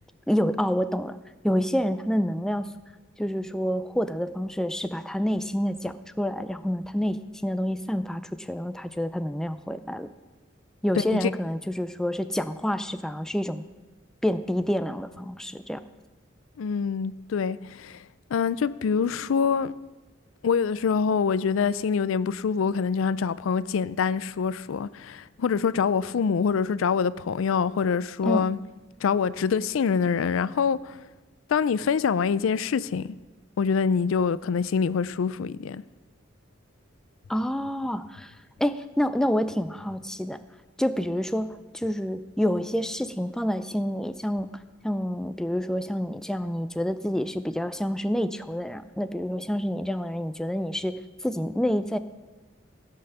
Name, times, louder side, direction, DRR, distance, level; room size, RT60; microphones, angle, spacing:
voice 1, 0.3-1.2 1.4-2.7 3.2-10.1 10.8-13.6 14.2-15.8 28.2-28.4 37.3-38.3 38.6-40.4 40.8-44.5 44.8-52.0, equal, 5° left, 0.3 m, -28 dB
voice 2, 11.0-11.3 16.6-18.0 18.3-19.8 20.4-28.6 29.0-31.0 31.5-33.1 33.6-35.8, left 6 dB, 80° left, 0.4 m, -25 dB
15.5 x 5.6 x 6.8 m
head